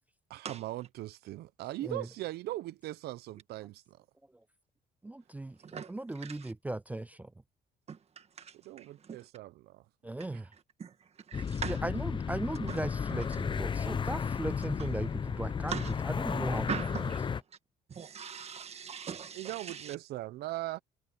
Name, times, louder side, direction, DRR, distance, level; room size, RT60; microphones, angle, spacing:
voice 1, 0.3-4.0 8.6-9.8 10.3-10.4 19.3-20.8, right 16 dB, 75° right, 0.7 m, -40 dB
voice 2, 5.0-5.6 5.9-7.3 10.0-10.5 11.5-17.1, right 2 dB, 10° right, 0.3 m, -37 dB
voice 3, 8.4-9.2 10.8-10.9 11.3-11.8 12.7-12.8 15.7-15.9 16.7-17.3 17.9-19.9, right 7 dB, 40° right, 1.7 m, -40 dB
sound 1, 11.3-17.4, left 6 dB, 30° left, 0.7 m, -33 dB
cardioid pair, 110°, 17 cm